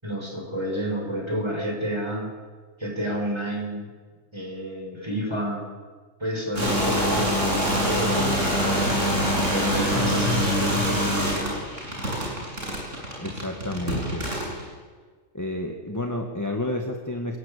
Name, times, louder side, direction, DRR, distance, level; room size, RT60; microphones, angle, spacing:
voice 1, 0.0-2.3 2.8-3.9 4.3-5.7 6.2-11.5, equal, 20° right, 0 dB, 6.0 m, -30 dB
sound 1, 6.6-14.6, equal, 70° right, 7.5 m, -25 dB
voice 2, 13.2-14.3 15.3-17.4, left 1 dB, 15° left, 2 dB, 1.9 m, -30 dB
27.0 x 20.0 x 8.4 m, 1.5 s
omnidirectional pair, 1.3 m